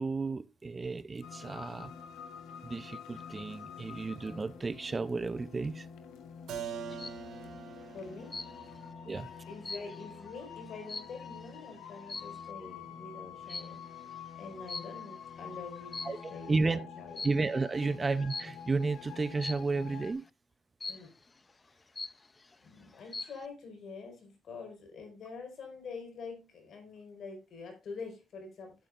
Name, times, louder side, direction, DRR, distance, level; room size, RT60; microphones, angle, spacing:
voice 1, 0.0-1.9 2.6-5.9 9.1-9.3 16.0-16.8 17.2-20.2, right 3 dB, 30° right, 0.6 m, -32 dB
sound 1, 1.2-20.1, left 7 dB, 85° left, 1.5 m, -47 dB
Keyboard (musical), 6.5-12.1, right 7 dB, 75° right, 3.7 m, -46 dB
sound 2, 6.6-7.3 8.3-8.8 9.2-11.5 12.0-12.5 13.5-13.9 14.7-15.3 15.8-16.5 17.2-17.5 18.3-18.7 19.4-19.8 20.8-21.3 21.7-21.8 22.0-22.6 22.9-23.5, left 3 dB, 25° left, 0.5 m, -42 dB
voice 2, 7.9-8.4 9.5-17.2 17.8-17.9 20.9-21.1 22.6-28.7, left 4 dB, 65° left, 4.8 m, -46 dB
14.0 x 8.3 x 2.5 m
cardioid pair, 90°, 0 cm